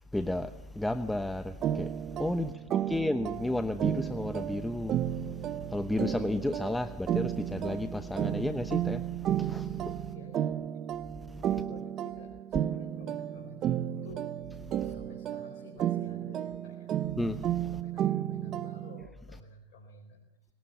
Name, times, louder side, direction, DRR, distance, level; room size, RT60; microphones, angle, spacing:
voice 1, 0.1-10.1 11.3-11.5 14.7-15.0 17.2-17.7, left 1 dB, 5° left, 0.9 m, -33 dB
sound 1, 1.6-19.1, right 11 dB, 40° right, 0.7 m, -33 dB
voice 2, 2.6-3.0 10.0-10.8 11.5-14.3 14.8-16.9 17.7-20.3, left 4 dB, 65° left, 4.5 m, -52 dB
20.0 x 19.0 x 7.1 m
hypercardioid pair, 95°, 0 cm